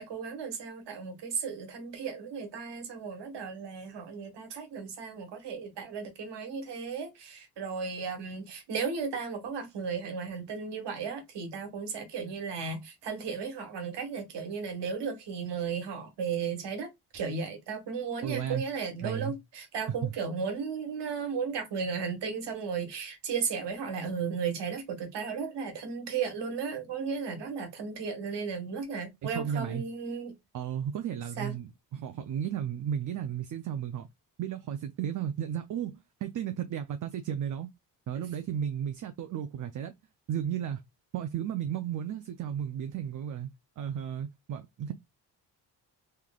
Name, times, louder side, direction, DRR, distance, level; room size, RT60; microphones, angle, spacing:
voice 1, 0.0-30.3 31.4-31.5, right 5 dB, 90° right, 1.4 m, -35 dB
voice 2, 18.2-18.6 19.0-19.4 19.9-20.1 29.2-29.9 30.5-34.1 34.4-37.7 38.1-39.9 40.3-40.8 41.1-43.5 43.8-44.9, right 9 dB, 50° right, 0.5 m, -34 dB
3.8 x 3.2 x 2.3 m
cardioid pair, 130°, 41 cm